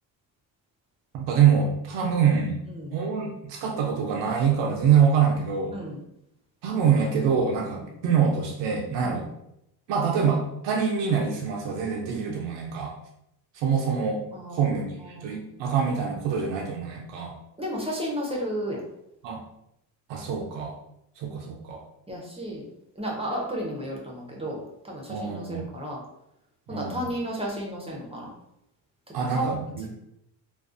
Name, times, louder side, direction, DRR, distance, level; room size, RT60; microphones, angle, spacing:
voice 1, 1.1-2.6 2.9-5.7 6.6-9.2 9.9-13.0 13.5-14.2 14.5-17.4 19.2-19.4 20.1-20.8 21.2-21.8 25.1-25.7 26.7-27.1 29.1-29.9, right 7 dB, 75° right, -1 dB, 0.6 m, -25 dB
voice 2, 14.3-14.7 15.1-15.4 17.6-18.8 22.1-22.6 23.0-26.0 26.7-28.3 29.3-29.5, equal, 15° right, -2 dB, 0.6 m, -33 dB
2.4 x 2.3 x 2.4 m, 0.80 s
cardioid pair, 85°, 43 cm